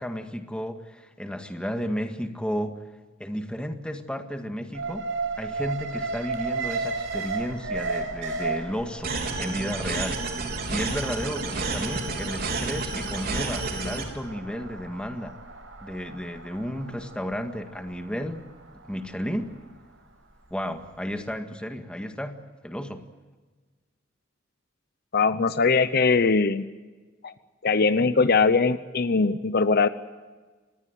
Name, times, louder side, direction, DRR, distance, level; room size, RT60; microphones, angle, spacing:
voice 1, 0.0-2.8 3.2-5.1 5.4-9.1 9.4-10.2 10.7-15.4 15.8-18.4 18.9-19.5 20.5-23.0, equal, 5° left, 5 dB, 1.8 m, -33 dB
Alarm, 4.7-20.9 21.2-21.3, right 3 dB, 70° right, 5.0 m, -35 dB
sound 1, 9.0-14.0, right 3 dB, 50° right, 4.0 m, -30 dB
voice 2, 25.1-26.7 27.2-27.3 27.6-29.9, left 4 dB, 50° left, 13 dB, 0.8 m, -21 dB
26.0 x 20.0 x 7.9 m, 1.3 s
head